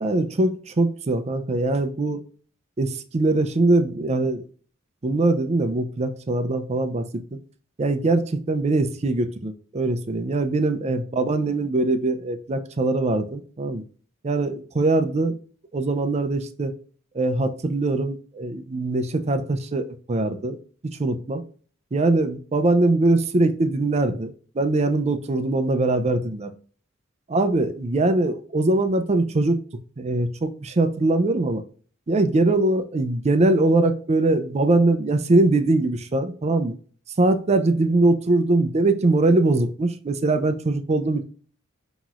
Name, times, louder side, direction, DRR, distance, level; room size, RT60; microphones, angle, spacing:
voice 1, 0.0-2.2 2.8-4.4 5.0-7.4 7.8-13.8 14.2-15.4 15.7-16.7 17.1-20.6 21.0-21.4 21.9-26.5 27.3-29.6 30.0-31.6 32.1-36.8 37.2-41.2, right 2 dB, 35° right, 0.5 m, -22 dB
5.7 x 3.0 x 2.4 m
head